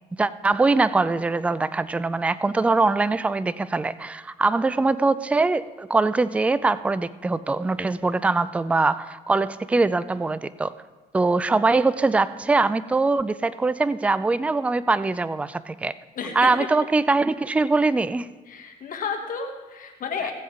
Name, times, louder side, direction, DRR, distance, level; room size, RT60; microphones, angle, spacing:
voice 1, 0.2-10.7 11.1-15.9 16.4-18.3, right 3 dB, 10° right, 0.3 m, -22 dB
voice 2, 16.1-16.7 18.5-20.3, left 5 dB, 55° left, 1.4 m, -32 dB
16.5 x 7.6 x 3.8 m
cardioid pair, 110°, 17 cm